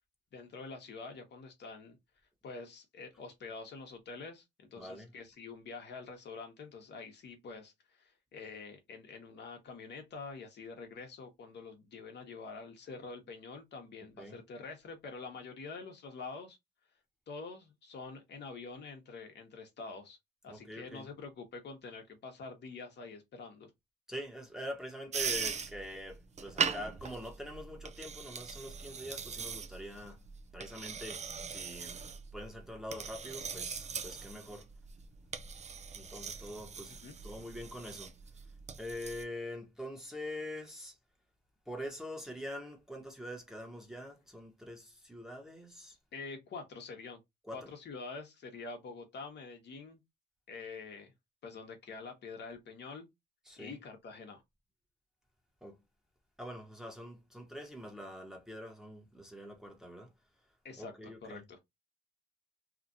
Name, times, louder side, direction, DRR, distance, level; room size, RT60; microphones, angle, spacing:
voice 1, 0.3-2.0 2.4-16.6 17.3-20.2 20.4-23.7 37.0-37.2 46.1-47.2 47.5-50.0 50.5-51.1 51.4-53.1 53.6-54.4 60.6-61.6, left 4 dB, 60° left, 1.1 m, -46 dB
voice 2, 4.8-5.1 14.2-14.4 20.5-21.1 24.1-30.2 30.5-32.0 32.3-34.7 35.9-36.9 37.2-38.1 38.8-41.0 41.7-46.0 47.4-47.7 53.4-53.7 55.6-55.8 56.4-60.1 60.8-61.4, equal, ahead, 1.1 m, -44 dB
sound 1, 25.1-39.2, right 6 dB, 35° right, 0.5 m, -40 dB
2.9 x 2.4 x 2.5 m
cardioid pair, 90°, 20 cm